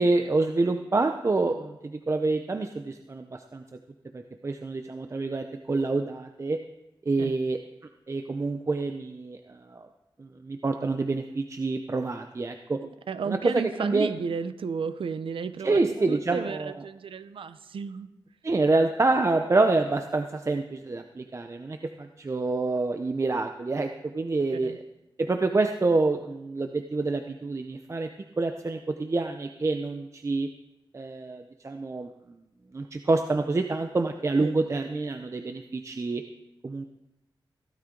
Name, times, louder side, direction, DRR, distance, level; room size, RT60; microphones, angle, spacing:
voice 1, 0.0-3.6 4.1-6.6 7.1-7.6 8.1-9.9 10.2-12.8 13.3-14.1 15.6-16.7 18.4-24.8 25.2-28.1 28.4-30.5 30.9-32.1 32.7-36.2 36.6-36.8, right 3 dB, 35° right, 6 dB, 0.7 m, -27 dB
voice 2, 12.8-15.8 16.1-18.1 24.6-24.8 34.4-34.6, right 6 dB, 85° right, 11 dB, 0.7 m, -33 dB
16.0 x 12.5 x 3.9 m, 0.95 s
wide cardioid pair, 100°, 9 cm